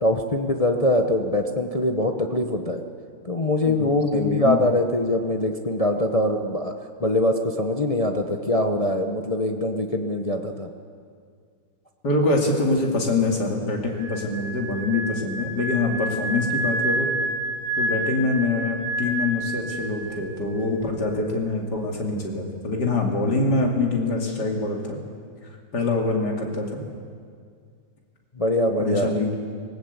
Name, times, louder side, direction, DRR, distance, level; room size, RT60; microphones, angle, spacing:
voice 1, 0.0-2.8 3.2-6.7 7.0-10.7 28.4-29.1, left 1 dB, 40° left, 4 dB, 0.5 m, -23 dB
voice 2, 3.6-4.6 12.0-17.1 17.8-25.0 25.7-26.8 28.8-29.3, left 3 dB, 55° left, 0 dB, 3.1 m, -24 dB
sound 1, 13.9-20.3 20.5-20.8, right 1 dB, 65° right, 6.2 m, -29 dB
19.0 x 19.0 x 8.1 m, 2.1 s
omnidirectional pair, 2.2 m